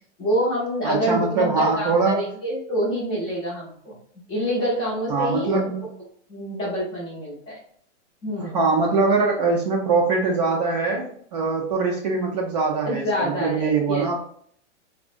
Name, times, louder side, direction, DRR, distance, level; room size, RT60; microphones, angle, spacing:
voice 1, 0.2-4.0 4.3-5.7 6.3-7.6 8.2-8.6 12.8-14.1, equal, 10° left, -5 dB, 0.5 m, -26 dB
voice 2, 0.8-2.3 5.1-5.9 8.4-14.3, right 4 dB, 35° right, 0 dB, 0.4 m, -22 dB
3.5 x 2.0 x 2.4 m, 0.62 s
hypercardioid pair, 160°, 36 cm